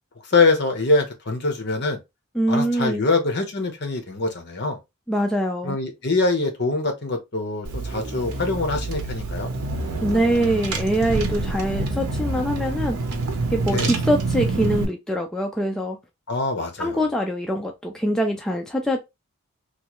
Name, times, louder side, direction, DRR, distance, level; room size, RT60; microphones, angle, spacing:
voice 1, 0.3-2.0 2.5-4.8 5.6-9.5 13.7-13.9 16.3-17.1, left 3 dB, 50° left, 0.8 m, -24 dB
voice 2, 2.3-3.1 5.1-5.8 10.0-13.0 13.5-16.0 16.8-19.0, right 1 dB, 5° left, 0.3 m, -23 dB
Car / Engine, 7.6-14.8, right 3 dB, 90° right, 0.7 m, -27 dB
3.1 x 2.3 x 2.9 m
head